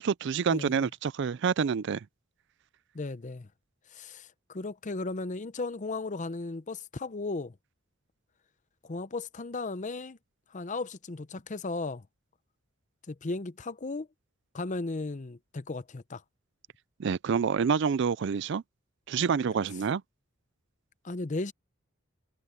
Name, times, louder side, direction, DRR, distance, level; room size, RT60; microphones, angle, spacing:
voice 1, 0.0-2.0 17.0-18.6 19.1-20.0, right 6 dB, 60° right, 0.4 m, -27 dB
voice 2, 0.5-0.9 2.9-3.5 3.9-7.5 8.8-10.2 10.5-12.0 13.1-14.1 14.5-16.2 21.0-21.5, left 3 dB, 35° left, 0.6 m, -35 dB
head